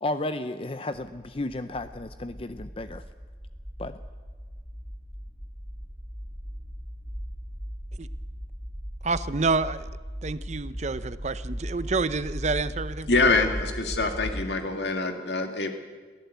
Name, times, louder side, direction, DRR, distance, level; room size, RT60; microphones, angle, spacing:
voice 1, 0.0-3.0 3.8-4.0, left 2 dB, 30° left, 11 dB, 0.6 m, -33 dB
sound 1, 1.1-14.4, equal, 10° right, 5.1 m, -38 dB
voice 2, 9.0-9.9 10.2-13.2, right 4 dB, 40° right, 15 dB, 0.6 m, -28 dB
voice 3, 13.1-15.7, left 3 dB, 70° left, 5 dB, 1.8 m, -25 dB
22.5 x 15.0 x 8.2 m, 1.4 s
head